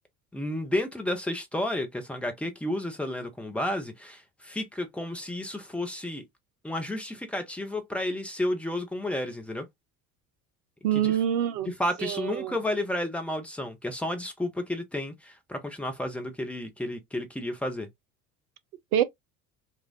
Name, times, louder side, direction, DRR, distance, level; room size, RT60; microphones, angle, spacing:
voice 1, 0.3-6.2 6.6-9.7 11.0-11.1 11.6-17.9, left 1 dB, 5° left, 0.8 m, -32 dB
voice 2, 10.8-11.7 12.0-12.5 18.9-19.0, right 10 dB, 65° right, 0.7 m, -25 dB
4.3 x 2.4 x 2.5 m
figure-of-eight pair, 65°, 48 cm